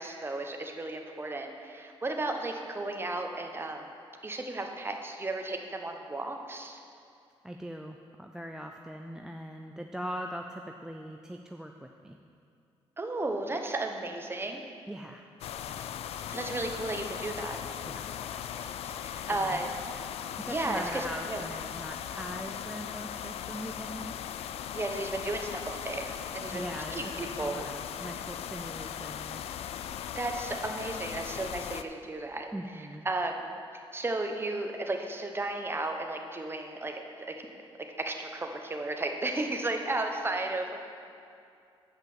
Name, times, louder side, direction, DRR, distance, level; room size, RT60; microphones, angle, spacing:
voice 1, 0.0-3.9 4.2-6.8 13.0-14.6 16.3-17.6 18.8-19.7 20.5-21.4 24.7-26.6 26.9-27.7 30.1-32.5 33.0-33.5 33.9-37.5 38.0-40.8, right 2 dB, 20° right, 3 dB, 1.0 m, -34 dB
voice 2, 7.4-12.2 14.9-15.3 17.9-18.1 19.2-19.6 20.4-24.2 26.5-29.4 32.5-33.1, equal, 5° right, 3 dB, 0.4 m, -41 dB
sound 1, 15.4-31.8, left 9 dB, 80° left, 0.4 m, -38 dB
7.8 x 5.7 x 7.1 m, 2.5 s
cardioid pair, 90°, 10 cm